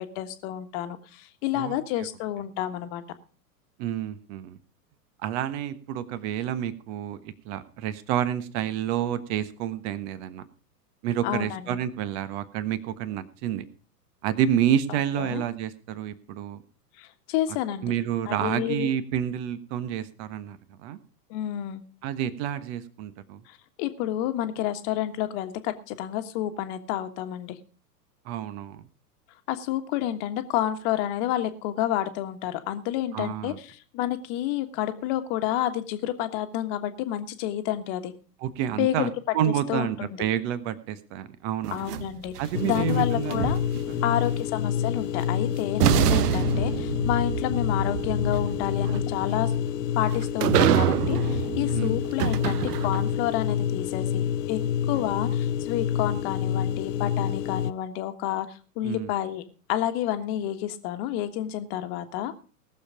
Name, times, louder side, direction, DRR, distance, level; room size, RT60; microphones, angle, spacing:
voice 1, 0.0-3.0 11.2-11.8 14.9-15.4 17.0-17.9 18.3-18.9 21.3-21.8 23.5-27.6 29.5-38.1 38.8-39.1 39.5-40.2 41.7-42.3 42.6-43.6 44.0-49.5 49.9-54.6 54.9-59.4 59.7-62.3, left 12 dB, 40° left, 8 dB, 1.5 m, -30 dB
voice 2, 3.8-4.6 5.2-10.4 11.0-13.6 14.2-16.6 17.8-21.0 22.0-23.4 28.2-28.8 33.1-33.6 38.4-41.9 42.4-43.5 43.9-44.2 51.7-52.0 54.9-55.0 58.8-59.1, right 10 dB, 40° right, 13 dB, 1.3 m, -29 dB
sound 1, 41.6-44.0 45.2-45.3 45.8-53.3, right 12 dB, 70° right, 0.7 m, -27 dB
sound 2, 42.5-57.7, left 9 dB, 75° left, 0.8 m, -28 dB
18.5 x 7.0 x 5.0 m, 0.40 s
hypercardioid pair, 110°, 49 cm